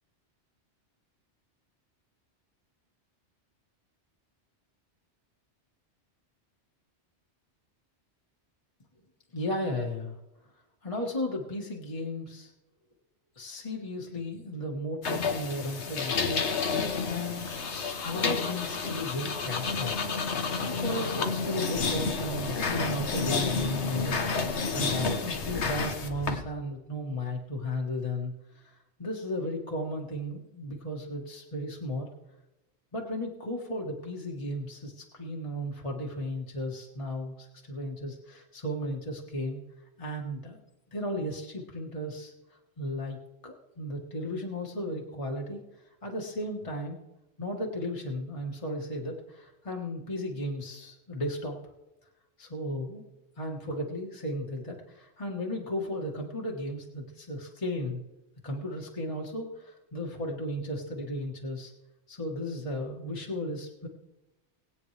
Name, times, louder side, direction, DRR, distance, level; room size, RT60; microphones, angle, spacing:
voice 1, 9.3-10.2 10.8-12.5 13.3-16.5 17.0-17.5 18.0-20.0 20.7-32.1 32.9-39.6 40.0-40.6 40.9-42.3 42.8-43.2 43.4-45.6 46.0-47.0 47.4-51.6 52.4-53.0 53.4-58.0 58.4-61.7 62.1-63.9, left 1 dB, 30° left, -1 dB, 1.3 m, -35 dB
sound 1, 15.0-26.4, left 4 dB, 70° left, 1.4 m, -30 dB
20.0 x 8.7 x 3.2 m, 0.96 s
omnidirectional pair, 1.2 m